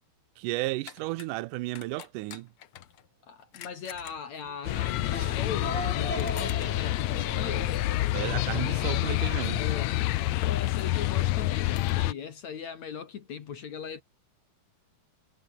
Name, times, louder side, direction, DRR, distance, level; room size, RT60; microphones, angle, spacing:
voice 1, 0.4-2.5 8.1-9.6, right 19 dB, 75° right, 2.0 m, -33 dB
sound 1, 0.9-1.3 1.7-3.1 3.5-4.6 5.1-5.2 5.5-5.6 6.1-8.2 8.5-8.6 9.1-11.0 11.4-11.9, left 11 dB, 70° left, 1.3 m, -48 dB
voice 2, 3.3-7.8 9.6-9.9 10.5-14.0, left 7 dB, 55° left, 3.0 m, -39 dB
sound 2, 4.4-9.2, right 2 dB, 15° right, 2.8 m, -40 dB
sound 3, 4.6-12.1, left 16 dB, 90° left, 1.5 m, -28 dB
omnidirectional pair, 4.1 m